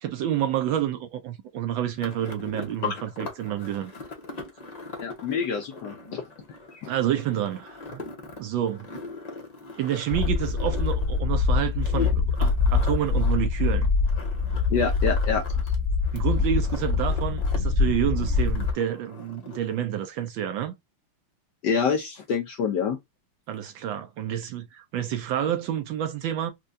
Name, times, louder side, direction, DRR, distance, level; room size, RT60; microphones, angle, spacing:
voice 1, 0.0-3.9 6.9-8.0 8.4-8.9 9.8-13.9 16.1-20.7 23.5-26.5, right 10 dB, 75° right, 1.2 m, -29 dB
sound 1, 2.0-15.7 16.0-17.6 17.8-19.8, left 3 dB, 55° left, 0.4 m, -41 dB
voice 2, 5.0-6.2 6.7-6.9 14.7-15.6 21.6-23.0, left 6 dB, 75° left, 1.0 m, -27 dB
sound 2, 10.1-18.7, left 4 dB, 10° left, 1.1 m, -24 dB
4.4 x 2.3 x 2.5 m
omnidirectional pair, 2.4 m